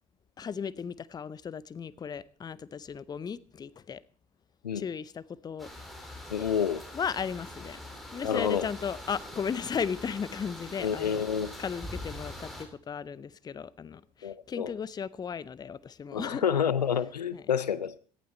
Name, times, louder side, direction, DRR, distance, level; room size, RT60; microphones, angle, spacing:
voice 1, 0.4-4.0 4.7-5.7 6.9-7.8 8.1-11.2 11.6-16.4 17.3-17.5, left 7 dB, 20° left, 0.6 m, -36 dB
sound 1, 5.6-12.6, left 1 dB, ahead, 4.0 m, -43 dB
voice 2, 6.3-6.8 8.2-8.7 10.8-11.5 14.2-14.7 16.1-18.0, left 8 dB, 80° left, 0.6 m, -28 dB
17.0 x 11.5 x 4.3 m
figure-of-eight pair, 65°, 21 cm